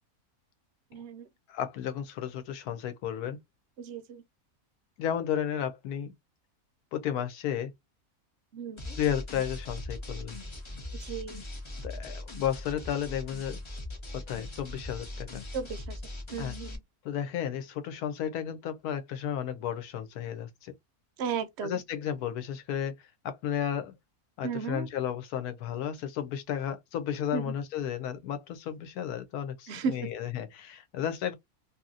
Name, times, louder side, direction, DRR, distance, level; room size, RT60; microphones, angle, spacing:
voice 1, 0.9-1.3 3.8-4.2 8.5-9.0 10.9-11.5 15.5-16.0 16.3-16.8 21.2-21.8 24.4-24.9 27.3-27.6 29.7-30.1, right 6 dB, 70° right, 0.6 m, -35 dB
voice 2, 1.5-3.4 5.0-6.1 6.9-7.7 8.9-10.4 11.8-13.6 14.1-15.4 16.4-16.5 17.0-20.7 21.6-23.9 24.4-31.3, left 9 dB, 90° left, 1.1 m, -33 dB
sound 1, 8.8-16.8, left 2 dB, 45° left, 0.3 m, -40 dB
2.8 x 2.6 x 2.5 m
omnidirectional pair, 1.6 m